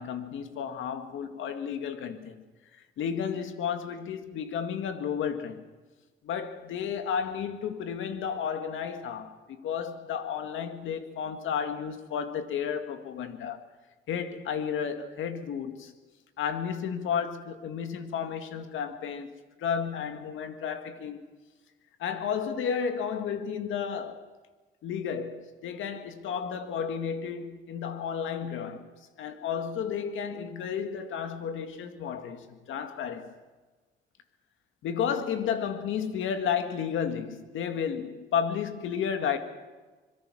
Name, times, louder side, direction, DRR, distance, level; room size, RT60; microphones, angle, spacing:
voice 1, 0.0-2.4 3.0-5.7 6.2-13.6 14.1-15.9 16.4-19.3 19.6-21.2 22.0-24.3 24.8-28.9 29.2-33.3 34.8-39.4, left 7 dB, 80° left, 2.2 m, -32 dB
25.0 x 22.5 x 6.3 m
cardioid pair, 90°, 20 cm